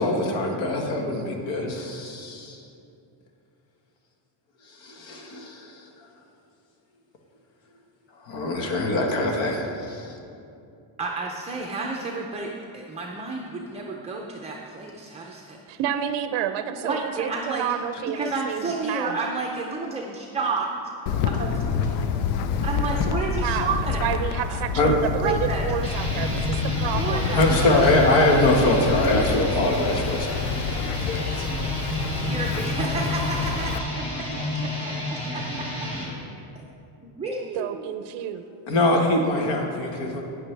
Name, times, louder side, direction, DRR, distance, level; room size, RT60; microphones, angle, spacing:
voice 1, 0.0-2.6 4.8-5.7 8.2-10.2 22.9-23.0 23.4-23.6 24.7-24.9 27.3-31.5 38.7-40.2, left 2 dB, 65° left, 1 dB, 1.6 m, -23 dB
voice 2, 11.0-15.6 16.8-17.7 18.1-20.7 21.3-21.5 22.6-24.7 25.2-25.7 27.0-27.7 29.0-29.1 32.2-34.6 34.8-35.7 37.0-37.9, right 3 dB, 15° right, 0 dB, 0.5 m, -31 dB
voice 3, 15.7-19.2 23.4-23.7 24.0-27.4 27.6-28.0 37.5-38.5, right 10 dB, 60° right, 10 dB, 0.6 m, -29 dB
Wind, 21.1-33.8, left 7 dB, 85° left, 0.7 m, -28 dB
sound 1, 21.3-29.3, equal, 35° left, 1.1 m, -37 dB
sound 2, 25.7-36.1, left 1 dB, 10° left, 2.0 m, -31 dB
11.0 x 9.6 x 3.3 m, 2.6 s
cardioid pair, 145°, 49 cm